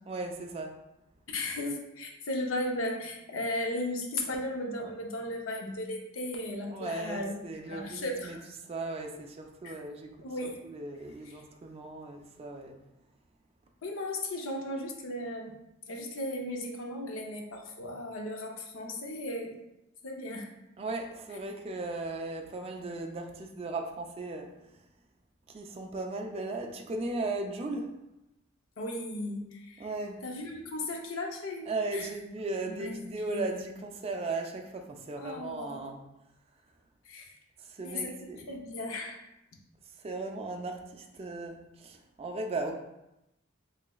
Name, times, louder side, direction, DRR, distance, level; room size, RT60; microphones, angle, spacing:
voice 1, 0.1-0.8 6.7-10.2 10.6-12.8 20.8-24.9 25.5-28.0 29.8-30.2 31.7-36.0 37.6-38.5 39.8-42.7, right 2 dB, 30° right, 2 dB, 0.3 m, -37 dB
voice 2, 1.3-7.3 7.7-8.5 9.6-9.8 10.2-10.5 13.8-15.5 15.9-19.6 20.0-20.5 28.8-29.9 30.2-32.1 32.8-33.0 33.3-33.4 35.2-35.8 37.1-37.4 37.8-39.2, left 1 dB, 70° left, 1 dB, 0.6 m, -36 dB
3.9 x 3.2 x 2.3 m, 0.89 s
head